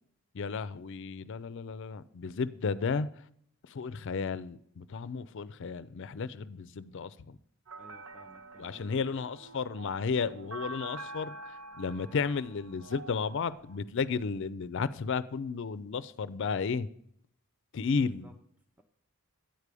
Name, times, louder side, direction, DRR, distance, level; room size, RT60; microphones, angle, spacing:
voice 1, 0.3-3.2 3.6-7.4 8.6-16.9 17.7-18.3, left 5 dB, 60° left, 0.4 m, -33 dB
sound 1, 7.7-13.8, right 2 dB, 70° right, 0.8 m, -46 dB
voice 2, 7.8-9.2 18.0-18.3 18.8-18.9, right 1 dB, 5° right, 0.5 m, -56 dB
9.1 x 4.8 x 6.7 m
head